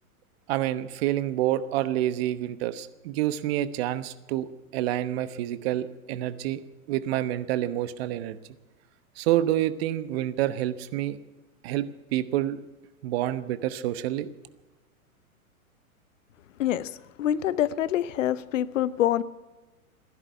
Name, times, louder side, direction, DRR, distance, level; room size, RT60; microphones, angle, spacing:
voice 1, 0.5-6.6 6.9-8.4 9.2-11.2 11.6-12.6 13.0-14.3, right 13 dB, 45° right, 14 dB, 1.1 m, -28 dB
voice 2, 17.2-19.2, left 11 dB, 60° left, 18 dB, 0.9 m, -25 dB
16.0 x 11.0 x 8.2 m, 1.1 s
hypercardioid pair, 115°, 43 cm